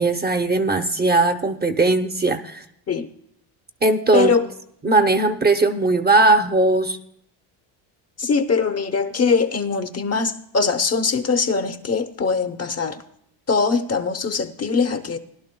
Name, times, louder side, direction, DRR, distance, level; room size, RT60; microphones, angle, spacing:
voice 1, 0.0-2.6 3.8-4.4 4.8-7.0, right 2 dB, 20° right, 0.8 m, -19 dB
voice 2, 4.1-4.5 8.2-13.0 13.5-15.2, left 5 dB, 30° left, 0.9 m, -22 dB
20.0 x 11.5 x 2.2 m
supercardioid pair, 85°, 47 cm